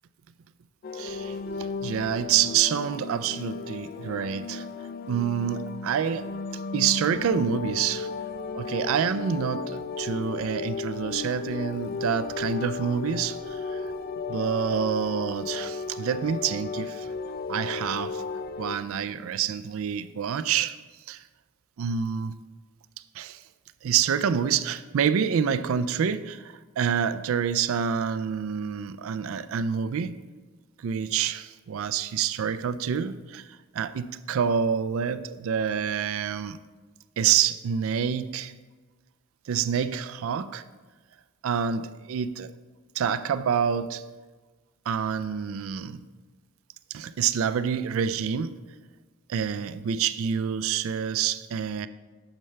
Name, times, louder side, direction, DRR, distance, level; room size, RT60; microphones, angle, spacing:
sound 1, 0.8-18.8, left 4 dB, 45° left, 0.3 m, -35 dB
voice 1, 0.9-4.7 5.1-6.3 6.7-8.1 8.5-13.9 14.3-17.1 17.5-18.2 18.6-20.8 21.1-21.2 21.8-22.5 23.1-23.4 23.8-30.2 30.8-36.6 37.2-38.5 39.5-40.6 41.4-42.5 42.9-44.0 44.9-46.0 46.9-48.6 49.3-51.9, right 7 dB, 70° right, 0.3 m, -27 dB
8.9 x 6.7 x 3.2 m
head